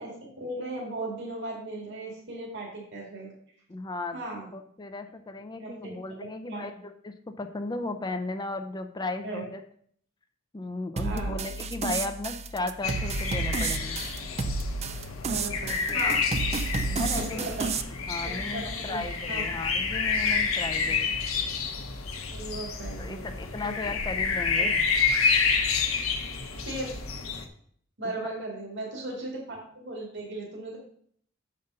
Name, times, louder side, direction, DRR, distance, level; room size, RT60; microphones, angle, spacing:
voice 1, 0.0-3.3 4.1-4.5 5.5-5.9 6.5-6.7 9.2-9.4 11.0-11.4 15.2-16.2 17.3-17.7 18.2-19.4 20.9-21.0 22.3-23.3 23.6-23.7 24.6-24.7 26.7-27.0 28.0-30.8, right 2 dB, 60° right, -2 dB, 2.2 m, -37 dB
voice 2, 3.7-4.2 4.5-9.6 10.5-14.0 15.9-16.2 16.8-17.6 18.1-21.1 23.0-24.8 28.2-28.3, left 2 dB, 20° left, 7 dB, 0.5 m, -35 dB
sound 1, 11.0-17.8, right 3 dB, 30° right, 0.5 m, -31 dB
sound 2, 12.8-27.4, left 5 dB, 70° left, 1.0 m, -29 dB
6.8 x 5.2 x 5.3 m, 0.62 s
head